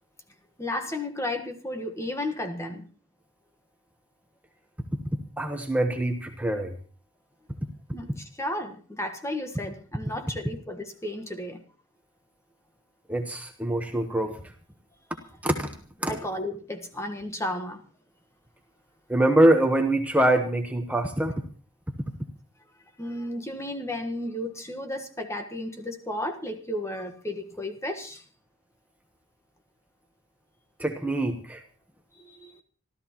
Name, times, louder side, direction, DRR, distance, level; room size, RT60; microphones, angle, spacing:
voice 1, 0.6-2.9 7.9-11.6 16.1-17.8 23.0-28.2 32.1-32.6, left 1 dB, 15° left, 6 dB, 1.4 m, -33 dB
voice 2, 5.4-6.7 13.1-14.4 15.4-15.7 16.0-16.2 19.1-21.4 30.8-31.6, right 1 dB, 5° right, 4 dB, 1.1 m, -24 dB
26.0 x 13.5 x 3.0 m, 0.38 s
head